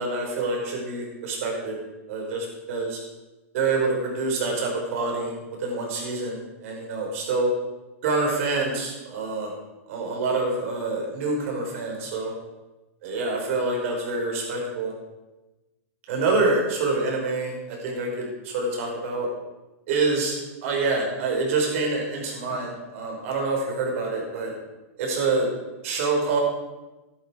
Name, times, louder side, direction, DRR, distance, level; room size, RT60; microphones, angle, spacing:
voice 1, 0.0-1.8 2.1-3.0 3.5-5.3 5.6-7.5 8.0-9.5 9.9-12.3 13.0-14.9 16.1-19.3 19.9-24.5 25.0-25.5 25.8-26.4, right 3 dB, 65° right, 0 dB, 5.2 m, -26 dB
12.5 x 12.0 x 4.8 m, 1.1 s
hypercardioid pair, 115°, 8 cm